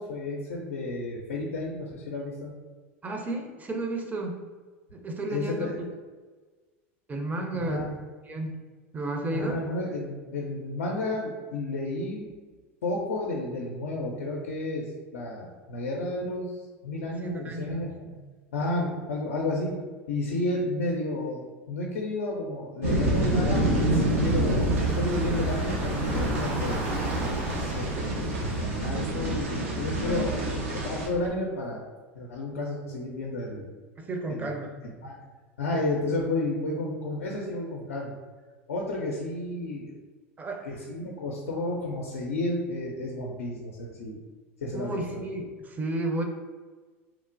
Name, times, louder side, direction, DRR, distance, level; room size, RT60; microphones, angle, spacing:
voice 1, 0.0-2.5 5.3-5.7 7.6-8.0 9.3-12.3 12.8-14.9 15.1-18.2 18.5-19.7 20.1-27.0 27.6-31.8 32.1-33.7 34.3-34.5 35.0-35.2 35.6-38.2 38.7-39.9 40.6-44.2 44.6-45.2, left 2 dB, 80° left, -2 dB, 0.4 m, -32 dB
voice 2, 3.0-4.4 4.9-5.7 7.1-7.9 8.3-8.6 8.9-9.6 17.2-17.9 18.8-18.9 30.0-30.4 34.0-34.7 40.4-40.7 44.7-46.2, right 2 dB, 20° right, 2 dB, 0.5 m, -32 dB
sound 1, 22.8-31.1, right 1 dB, 85° right, 0.6 m, -27 dB
Car / Engine, 23.1-31.3, right 1 dB, 60° right, 1.0 m, -39 dB
3.0 x 2.1 x 2.5 m, 1.4 s
hypercardioid pair, 85°, 7 cm